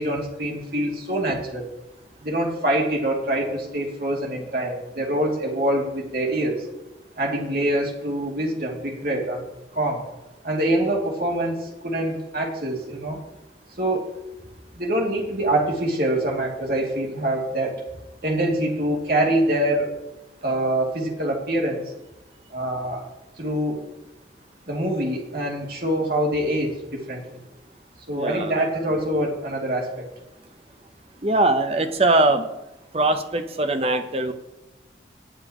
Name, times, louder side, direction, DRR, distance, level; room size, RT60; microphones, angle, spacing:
voice 1, 0.0-1.7 2.2-6.7 7.2-9.4 9.7-10.0 10.4-13.2 13.7-14.1 14.7-17.8 18.2-19.9 20.4-21.9 22.5-23.1 23.4-23.8 24.7-27.2 28.1-30.0, right 1 dB, 55° right, -1 dB, 2.7 m, -25 dB
voice 2, 28.1-28.5 31.2-32.5 32.9-34.3, right 2 dB, 35° right, 7 dB, 0.9 m, -21 dB
19.5 x 8.5 x 3.1 m, 0.96 s
head